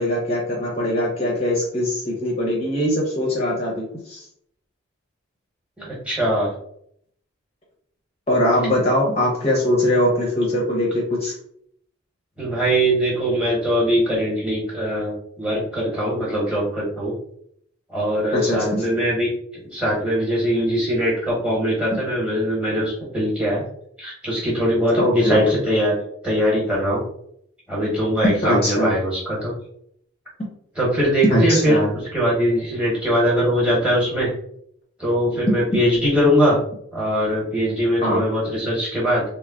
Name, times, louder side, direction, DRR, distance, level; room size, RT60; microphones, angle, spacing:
voice 1, 0.0-4.2 8.3-11.3 18.3-18.9 25.0-25.6 28.4-28.9 31.3-31.9 35.5-35.6 38.0-38.2, left 1 dB, 30° left, -3 dB, 0.6 m, -21 dB
voice 2, 5.8-6.5 12.4-17.1 17.9-19.3 19.7-23.6 24.0-25.9 26.2-27.0 27.7-29.5 30.8-31.8 32.1-34.3 35.0-36.6 36.9-39.2, equal, 5° right, -6 dB, 1.0 m, -21 dB
3.3 x 2.1 x 2.3 m, 0.69 s
head